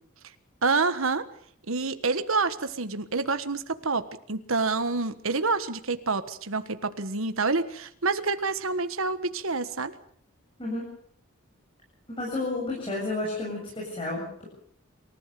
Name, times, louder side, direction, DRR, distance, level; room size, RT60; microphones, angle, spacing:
voice 1, 0.6-1.2 1.7-9.9, right 4 dB, 75° right, 10 dB, 1.5 m, -27 dB
voice 2, 10.6-10.9 12.1-14.5, left 2 dB, 25° left, -3 dB, 7.4 m, -31 dB
27.5 x 15.0 x 6.9 m, 0.63 s
head